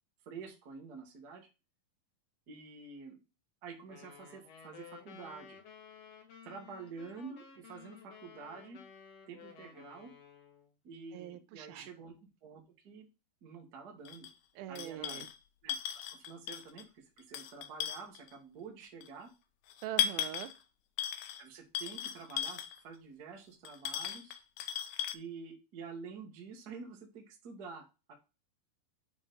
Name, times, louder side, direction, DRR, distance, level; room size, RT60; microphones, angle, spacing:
voice 1, 0.2-1.5 2.5-3.2 3.6-5.6 6.4-8.8 9.3-10.1 10.8-13.1 13.4-14.3 14.7-15.3 15.6-19.3 21.4-24.4 25.1-28.1, right 5 dB, 55° right, 2 dB, 1.1 m, -48 dB
sound 1, 3.9-10.7, left 7 dB, 55° left, 2.1 m, -54 dB
voice 2, 11.1-11.9 14.6-15.3 19.8-20.5, right 12 dB, 90° right, 12 dB, 2.5 m, -42 dB
sound 2, 14.0-14.3 14.7-15.4 15.7-16.8 17.2-18.3 19.0-19.1 19.7-20.6 21.0-21.4 21.7-22.8 23.6-25.1, left 10 dB, 80° left, 1.8 m, -36 dB
8.9 x 3.8 x 3.9 m, 0.29 s
omnidirectional pair, 4.1 m